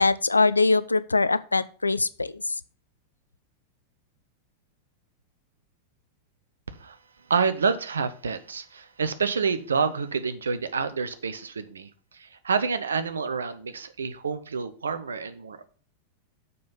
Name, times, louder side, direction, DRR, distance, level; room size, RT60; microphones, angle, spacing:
voice 1, 0.0-2.4, left 3 dB, 80° left, 16 dB, 0.4 m, -22 dB
voice 2, 7.3-15.7, right 5 dB, 70° right, 11 dB, 0.8 m, -28 dB
6.9 x 5.2 x 5.4 m, 0.40 s
figure-of-eight pair, 90°, 0 cm